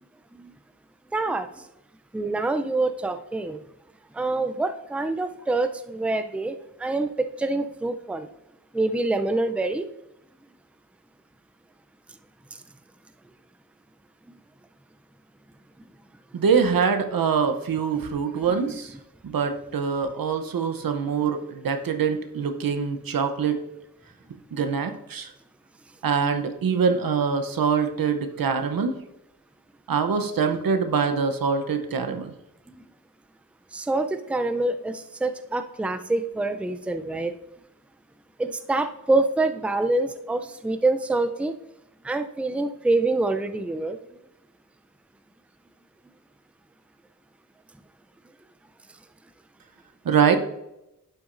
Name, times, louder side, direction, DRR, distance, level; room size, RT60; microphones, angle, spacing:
voice 1, 1.1-1.5 2.1-3.6 4.1-6.5 6.8-7.1 7.4-8.3 8.7-9.9 17.9-18.0 18.4-18.5 33.7-37.3 38.4-41.5 42.0-44.0, right 2 dB, 5° right, 8 dB, 0.5 m, -26 dB
voice 2, 16.3-18.9 19.2-23.6 24.5-25.3 26.0-29.0 29.9-32.3 50.0-50.4, right 6 dB, 80° right, 7 dB, 0.8 m, -24 dB
11.0 x 5.9 x 2.6 m, 0.87 s
cardioid pair, 60°, 34 cm